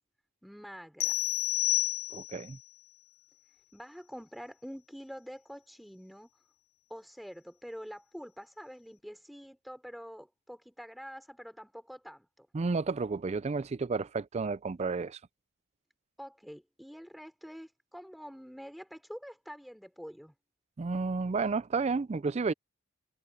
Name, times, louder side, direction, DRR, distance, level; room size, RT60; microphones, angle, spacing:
voice 1, 0.4-1.1 3.7-6.3 6.9-12.5 16.2-20.3, equal, ahead, 4.5 m, -46 dB
sound 1, 1.0-2.5, left 16 dB, 75° left, 0.3 m, -30 dB
voice 2, 2.1-2.6 12.5-15.2 20.8-22.5, right 4 dB, 30° right, 0.3 m, -31 dB
head